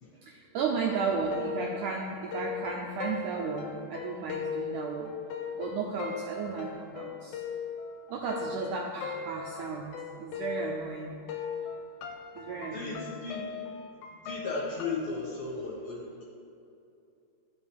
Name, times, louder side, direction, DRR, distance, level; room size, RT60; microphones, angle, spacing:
voice 1, 0.3-5.1 5.6-7.4 8.1-11.2 12.4-13.1, right 5 dB, 80° right, -1 dB, 1.8 m, -34 dB
sound 1, 0.8-11.0 11.3-15.1, left 6 dB, 80° left, 2.2 m, -39 dB
voice 2, 12.7-13.4 14.2-16.2, left 3 dB, 60° left, -4 dB, 1.9 m, -35 dB
13.0 x 5.0 x 3.5 m, 2.7 s
omnidirectional pair, 4.2 m